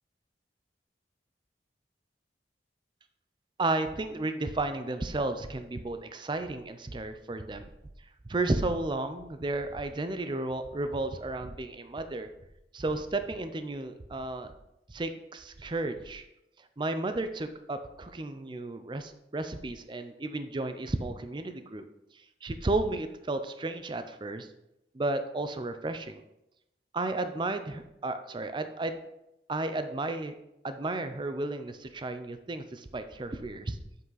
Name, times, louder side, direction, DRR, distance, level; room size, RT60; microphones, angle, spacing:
voice 1, 3.6-7.7 8.3-12.3 12.7-14.5 14.9-16.2 16.8-21.8 22.4-24.5 24.9-26.2 26.9-29.0 29.5-30.4 30.6-33.8, right 2 dB, 25° right, 9 dB, 0.5 m, -33 dB
7.3 x 5.6 x 3.9 m, 0.88 s
head